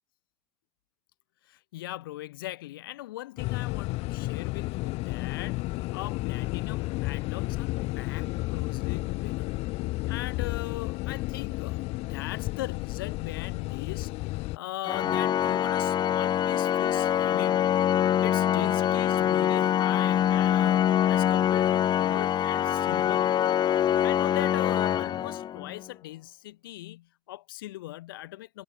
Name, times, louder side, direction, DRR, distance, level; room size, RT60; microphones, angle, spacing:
voice 1, 1.5-9.5 10.1-17.7 18.2-28.6, left 16 dB, 85° left, 4.4 m, -39 dB
sound 1, 3.4-14.6, left 21 dB, 65° left, 1.3 m, -32 dB
Organ, 14.8-25.8, left 10 dB, 40° left, 0.4 m, -24 dB
hypercardioid pair, 80°, 11 cm